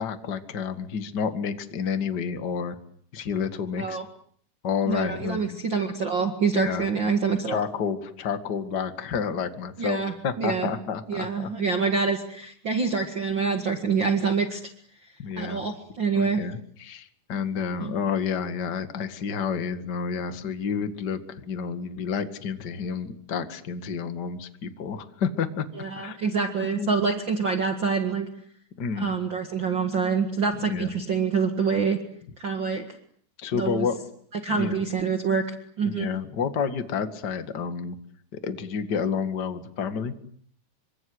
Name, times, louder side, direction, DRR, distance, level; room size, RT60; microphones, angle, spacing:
voice 1, 0.0-2.8 3.1-4.0 4.6-5.6 6.5-6.8 7.5-11.5 15.2-15.6 16.1-25.6 26.0-26.2 26.6-26.9 28.8-29.1 30.6-30.9 33.4-33.9 34.5-34.8 35.8-38.0 38.3-40.1, left 6 dB, 75° left, 9 dB, 0.9 m, -30 dB
voice 2, 4.9-7.6 9.8-10.7 11.1-14.6 15.4-16.4 17.8-17.9 25.8-28.3 29.0-32.0 32.4-32.8 33.5-33.9 34.3-36.1, right 5 dB, 65° right, 6 dB, 1.1 m, -26 dB
26.5 x 25.5 x 8.0 m, 0.62 s
omnidirectional pair, 5.5 m